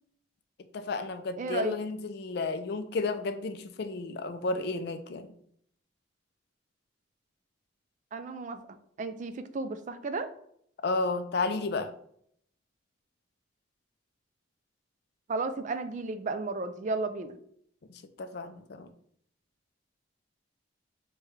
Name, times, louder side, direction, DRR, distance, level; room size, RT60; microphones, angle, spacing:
voice 1, 0.7-5.3 10.8-11.9 17.9-18.9, left 3 dB, 55° left, 0.4 m, -32 dB
voice 2, 1.4-1.8 8.1-8.6 9.0-10.3 15.3-17.4, right 3 dB, 40° right, 0.3 m, -33 dB
6.3 x 2.2 x 3.1 m
head